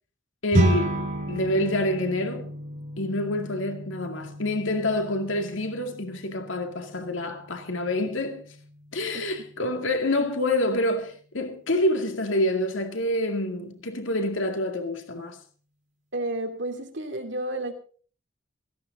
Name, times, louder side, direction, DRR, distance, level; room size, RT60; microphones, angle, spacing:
voice 1, 0.4-2.5 3.0-8.4 8.9-15.4, left 1 dB, 85° left, 2.1 m, -27 dB
sound 1, 0.5-10.0, right 1 dB, 40° right, 3.2 m, -32 dB
voice 2, 16.1-17.7, right 1 dB, 65° right, 2.7 m, -31 dB
17.0 x 15.0 x 3.9 m
head